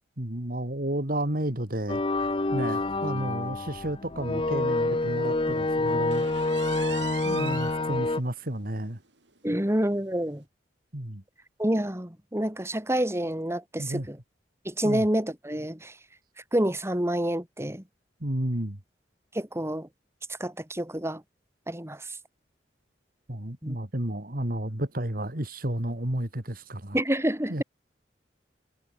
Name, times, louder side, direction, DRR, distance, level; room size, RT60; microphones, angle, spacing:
voice 1, 0.2-2.0 2.5-6.3 7.2-9.0 10.9-11.2 13.8-14.1 14.8-15.1 18.2-18.8 23.3-27.0 27.5-27.6, right 1 dB, 55° right, 3.2 m, -31 dB
sound 1, 1.9-8.2, left 2 dB, 30° left, 0.9 m, -27 dB
sound 2, 6.1-7.8 8.3-8.4 8.8-8.9 9.3-9.4 10.3-10.4, right 7 dB, 80° right, 4.5 m, -39 dB
voice 2, 9.4-10.4 11.6-14.2 14.6-15.9 16.5-17.8 19.3-19.9 20.4-21.2 21.7-22.2 23.6-23.8 26.9-27.6, right 1 dB, 15° right, 2.9 m, -28 dB
head